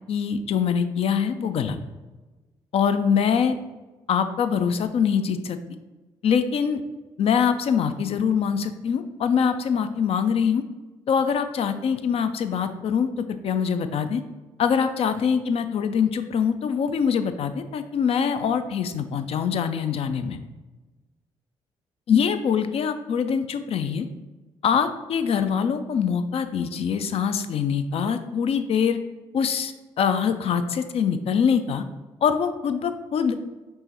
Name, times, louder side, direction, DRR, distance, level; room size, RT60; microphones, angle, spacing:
voice 1, 0.1-1.8 2.7-3.5 4.1-5.6 6.2-6.8 7.2-10.6 11.1-14.2 14.6-20.4 22.1-24.1 24.6-29.0 29.3-31.8 32.2-33.4, left 7 dB, 45° left, 10 dB, 0.4 m, -24 dB
5.3 x 3.2 x 2.9 m, 1.2 s
figure-of-eight pair, 45°, 14 cm